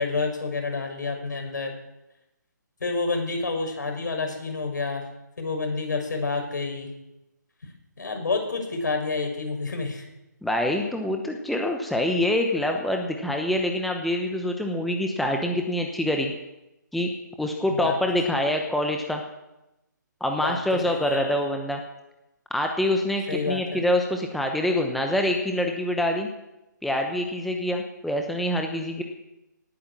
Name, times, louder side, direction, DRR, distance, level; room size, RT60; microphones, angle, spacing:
voice 1, 0.0-1.7 2.8-5.1 5.4-6.9 8.0-10.0 17.7-17.9 20.4-20.6 20.8-21.3 23.3-23.8, left 3 dB, 70° left, 4 dB, 5.7 m, -29 dB
voice 2, 10.4-16.3 16.9-17.1 17.4-19.2 20.2-21.8 22.5-26.3 26.8-29.0, left 1 dB, ahead, 3 dB, 0.9 m, -25 dB
19.0 x 8.8 x 7.5 m, 0.93 s
hypercardioid pair, 155°, 10 cm